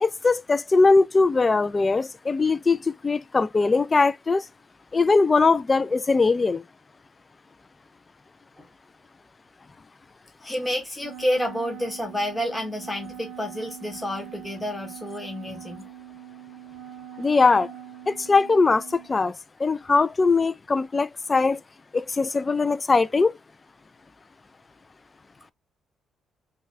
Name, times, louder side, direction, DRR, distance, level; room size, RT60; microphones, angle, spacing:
voice 1, 0.0-4.5 4.9-6.6 17.2-17.7 18.1-21.6 21.9-23.3, left 4 dB, 30° left, 0.4 m, -21 dB
voice 2, 10.4-15.8, left 1 dB, 10° left, 1.1 m, -29 dB
Wind instrument woodwind instrument, 11.0-19.1, right 10 dB, 85° right, 0.6 m, -42 dB
3.9 x 2.4 x 3.2 m
cardioid pair, 90°, 0 cm